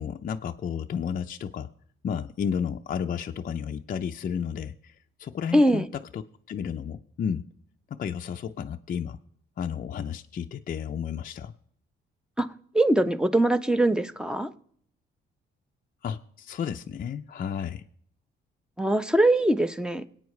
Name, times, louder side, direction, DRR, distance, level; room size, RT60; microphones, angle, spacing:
voice 1, 0.0-1.7 2.0-6.2 6.5-7.4 7.9-9.2 9.6-11.5 16.0-17.8, left 7 dB, 45° left, 5 dB, 0.5 m, -32 dB
voice 2, 5.5-5.9 12.4-12.5 12.7-14.5 18.8-20.0, right 1 dB, 5° right, 11 dB, 0.8 m, -22 dB
22.0 x 8.8 x 3.2 m, 0.64 s
cardioid pair, 90°, 20 cm